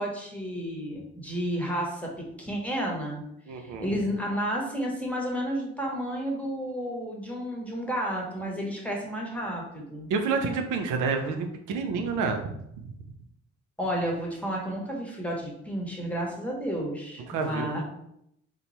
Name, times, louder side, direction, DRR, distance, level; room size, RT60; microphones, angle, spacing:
voice 1, 0.0-3.2 3.5-10.1 13.8-17.8, equal, 5° left, -1 dB, 0.9 m, -31 dB
voice 2, 3.5-3.9 10.1-12.9 17.3-17.8, right 4 dB, 80° right, 5 dB, 0.5 m, -29 dB
2.9 x 2.3 x 3.9 m, 0.76 s
cardioid pair, 90°, 30 cm